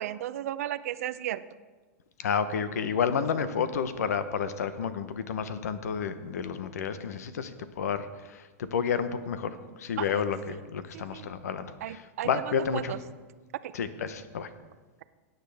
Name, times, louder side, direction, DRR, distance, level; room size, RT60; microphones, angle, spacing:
voice 1, 0.0-1.4 10.0-10.2 10.9-11.3 11.8-12.3 12.7-13.0 13.6-13.7, right 12 dB, 70° right, 14 dB, 0.5 m, -34 dB
voice 2, 2.2-12.9 13.7-14.5, left 7 dB, 90° left, 12 dB, 0.9 m, -31 dB
16.5 x 9.3 x 3.5 m, 1.3 s
supercardioid pair, 150°, 8 cm